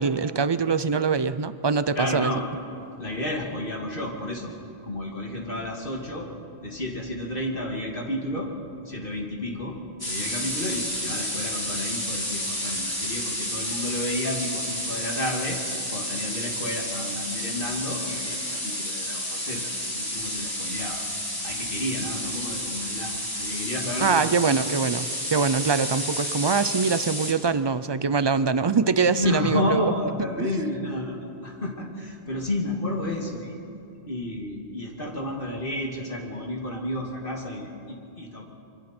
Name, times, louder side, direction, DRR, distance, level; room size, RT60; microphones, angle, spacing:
voice 1, 0.0-2.3 24.0-29.9 30.4-30.5, right 5 dB, 40° right, 14 dB, 0.4 m, -23 dB
voice 2, 1.9-2.4 3.0-4.5 4.8-6.3 6.6-8.5 8.9-9.8 10.0-15.6 15.9-21.0 21.4-24.5 29.0-33.6 34.1-38.4, left 1 dB, 55° left, -1 dB, 2.4 m, -31 dB
sound 1, 10.0-27.3, left 1 dB, 20° left, 3.4 m, -31 dB
25.0 x 24.5 x 4.4 m, 2.5 s
omnidirectional pair, 1.1 m